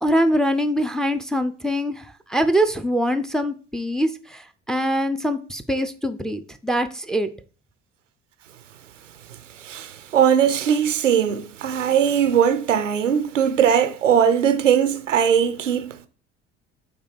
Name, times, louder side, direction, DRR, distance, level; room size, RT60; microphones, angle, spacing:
voice 1, 0.0-7.3, equal, ahead, 0.5 m, -23 dB
voice 2, 9.6-16.1, right 8 dB, 85° right, 0.6 m, -20 dB
8.1 x 2.8 x 4.9 m
figure-of-eight pair, 60°, 36 cm